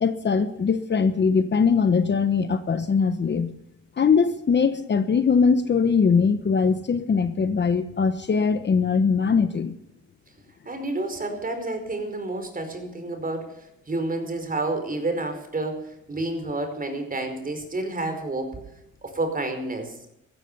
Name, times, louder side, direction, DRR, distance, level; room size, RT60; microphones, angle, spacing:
voice 1, 0.0-3.5 4.0-9.7, left 5 dB, 35° left, 10 dB, 1.1 m, -21 dB
voice 2, 10.6-18.6 19.0-19.9, right 2 dB, 30° right, 6 dB, 4.8 m, -30 dB
15.0 x 14.0 x 5.5 m, 0.83 s
cardioid pair, 90°, 30 cm